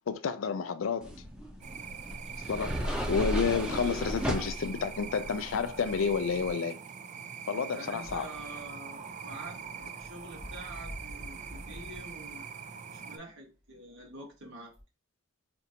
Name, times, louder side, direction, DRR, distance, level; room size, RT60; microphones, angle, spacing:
voice 1, 0.1-1.1 2.5-6.8 7.5-8.3, left 5 dB, 80° left, 0.4 m, -30 dB
sound 1, 1.0-6.5, equal, 5° right, 0.7 m, -36 dB
sound 2, 1.6-13.2, right 6 dB, 40° right, 0.4 m, -43 dB
voice 2, 7.7-9.6 10.0-12.5 12.9-14.7, right 2 dB, 75° right, 1.5 m, -46 dB
sound 3, 7.9-12.4 13.2-13.3 14.7-14.8, equal, 90° right, 2.0 m, -48 dB
4.4 x 2.5 x 2.8 m
head